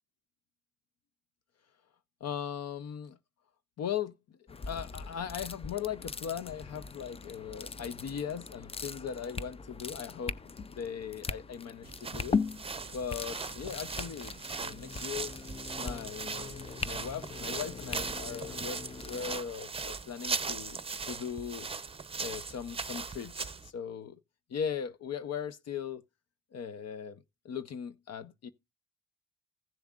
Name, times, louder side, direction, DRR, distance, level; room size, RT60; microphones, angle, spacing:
voice 1, 2.2-3.2 3.8-12.4 12.9-15.3 15.8-18.8 19.1-21.7 22.2-24.2 24.5-26.0 26.5-28.5, left 8 dB, 55° left, 0.7 m, -39 dB
sound 1, 4.5-19.4, left 5 dB, 20° left, 0.5 m, -40 dB
sound 2, 11.8-23.7, right 4 dB, 20° right, 0.7 m, -39 dB
16.0 x 6.9 x 2.4 m
cardioid pair, 90°, 30 cm